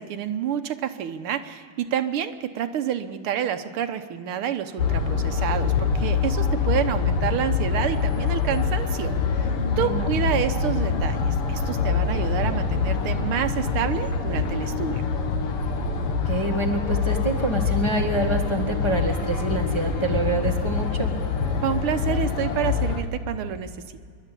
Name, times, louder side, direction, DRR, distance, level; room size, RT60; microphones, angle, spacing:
voice 1, 0.0-15.0 21.6-23.7, right 9 dB, 75° right, 9 dB, 1.7 m, -28 dB
sound 1, 4.8-23.0, left 5 dB, 90° left, 2.4 m, -25 dB
voice 2, 9.7-10.1 16.0-21.1, right 1 dB, 15° left, 1 dB, 1.0 m, -27 dB
27.0 x 11.5 x 8.3 m, 2.2 s
omnidirectional pair, 2.4 m